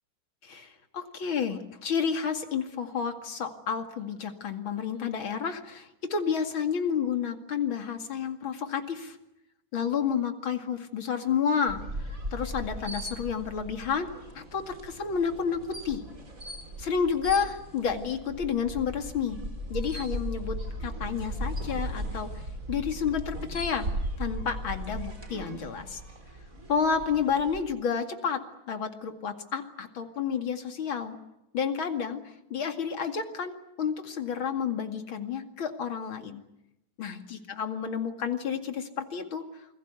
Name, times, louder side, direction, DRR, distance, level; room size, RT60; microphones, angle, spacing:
voice 1, 0.4-9.2 9.7-11.8 12.3-14.1 14.3-16.0 16.8-19.4 19.7-22.4 22.7-23.9 24.2-26.0 26.7-28.4 28.7-31.2 31.5-36.4 37.0-39.4, left 6 dB, 75° left, 6 dB, 3.1 m, -30 dB
sound 1, 11.7-27.6, right 1 dB, 40° right, 4.4 m, -37 dB
28.5 x 21.5 x 8.2 m, 0.89 s
omnidirectional pair, 2.2 m